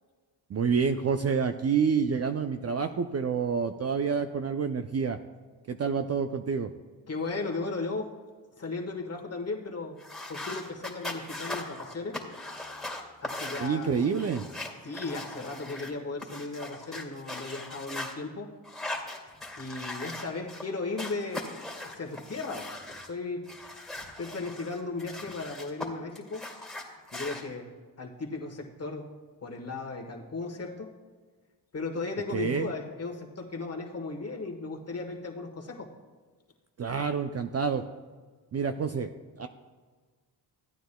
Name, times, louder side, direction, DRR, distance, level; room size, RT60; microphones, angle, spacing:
voice 1, 0.5-5.2 5.7-6.7 13.6-14.4 32.3-32.7 36.8-37.8 38.5-39.1 39.4-39.5, right 6 dB, 35° right, 8 dB, 0.4 m, -28 dB
voice 2, 7.1-8.1 8.6-10.0 10.3-12.2 13.2-13.9 14.8-18.5 19.6-21.5 21.8-23.5 24.2-26.5 27.1-27.7 28.0-29.1 29.4-30.9 31.7-35.9, left 3 dB, 35° left, 2 dB, 1.5 m, -36 dB
sound 1, 10.0-18.1 18.6-20.6 21.0-23.1 23.5-25.9 26.1-27.4, left 2 dB, ahead, 2.1 m, -39 dB
15.5 x 9.1 x 2.2 m, 1.4 s
cardioid pair, 85°, 44 cm